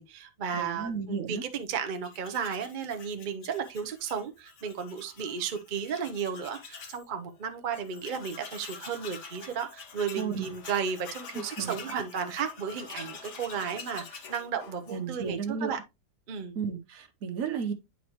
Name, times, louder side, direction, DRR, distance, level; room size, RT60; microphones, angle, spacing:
voice 1, 0.0-15.8 16.3-16.6, right 7 dB, 45° right, 0.6 m, -34 dB
voice 2, 0.5-1.4 10.1-10.5 11.3-11.9 14.9-15.8 16.5-17.7, right 6 dB, 60° right, 1.1 m, -33 dB
Tools, 1.9-7.1 7.4-7.5 7.7-15.3, left 6 dB, 85° left, 1.7 m, -46 dB
9.3 x 4.2 x 2.9 m
omnidirectional pair, 1.8 m